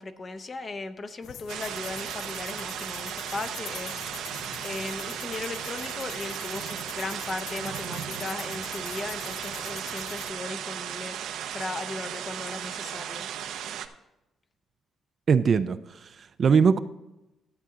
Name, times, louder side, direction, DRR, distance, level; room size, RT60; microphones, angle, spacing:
voice 1, 0.0-4.3 4.6-13.3, left 3 dB, 25° left, 10 dB, 0.6 m, -37 dB
sound 1, 1.2-10.3, left 10 dB, 75° left, 0.3 m, -44 dB
sound 2, 1.5-13.9, right 9 dB, 85° right, 0.7 m, -36 dB
voice 2, 15.3-16.8, right 6 dB, 40° right, 12 dB, 0.3 m, -22 dB
12.0 x 8.1 x 3.7 m, 0.94 s
cardioid pair, 160°, 0 cm